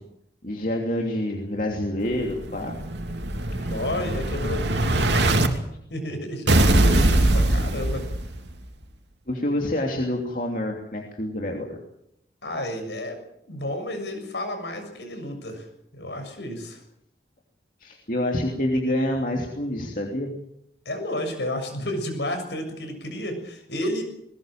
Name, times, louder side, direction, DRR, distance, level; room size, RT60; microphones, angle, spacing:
voice 1, 0.4-2.8 9.3-11.8 17.8-20.3, left 1 dB, 50° left, 0 dB, 3.0 m, -27 dB
Explosion, 2.1-5.5 6.5-8.5, right 1 dB, 85° right, 2.9 m, -21 dB
voice 2, 3.5-5.3 5.9-8.1 12.4-13.2 13.5-15.7 15.9-16.8 20.9-24.0, left 1 dB, 80° left, 6 dB, 6.8 m, -31 dB
21.0 x 19.5 x 7.6 m, 0.75 s
head